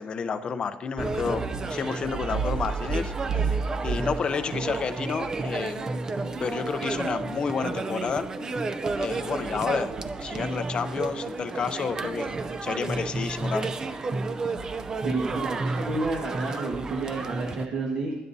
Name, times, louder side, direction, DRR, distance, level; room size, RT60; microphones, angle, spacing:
voice 1, 0.0-3.6 3.8-5.9 6.4-8.3 9.0-9.9 10.2-12.3 12.6-13.7, left 6 dB, 30° left, 10 dB, 0.6 m, -30 dB
sound 1, 1.0-17.7, right 3 dB, 20° right, 0.5 m, -31 dB
voice 2, 15.0-18.1, right 3 dB, 55° right, -3 dB, 1.6 m, -30 dB
19.0 x 10.5 x 2.7 m, 1.1 s
cardioid pair, 175°, 3 cm